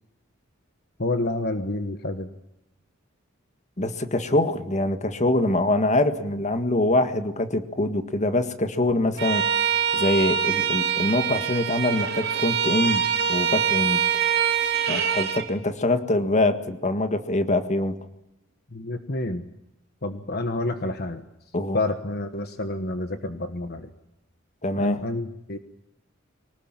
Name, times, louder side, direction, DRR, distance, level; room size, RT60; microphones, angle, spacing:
voice 1, 1.0-2.3 18.7-19.4 20.0-21.2 21.7-23.9 24.8-25.6, left 2 dB, 50° left, 8 dB, 1.3 m, -29 dB
voice 2, 3.8-9.4 9.9-14.0 14.9-18.0 21.5-21.8 24.6-25.0, left 2 dB, 35° left, 9 dB, 1.8 m, -24 dB
Bowed string instrument, 9.2-15.5, right 8 dB, 55° right, 3.1 m, -24 dB
24.0 x 19.5 x 8.9 m, 0.85 s
head